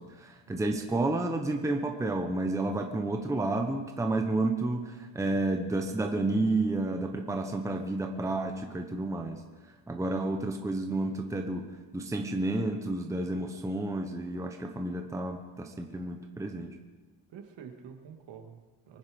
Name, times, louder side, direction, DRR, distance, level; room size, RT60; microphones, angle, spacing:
voice 1, 0.0-9.4 9.9-11.6 11.9-16.7, right 2 dB, 5° right, 3 dB, 0.9 m, -31 dB
voice 2, 17.3-19.0, right 7 dB, 65° right, 5 dB, 2.1 m, -48 dB
24.0 x 9.5 x 5.2 m, 1.2 s
cardioid pair, 170°, 47 cm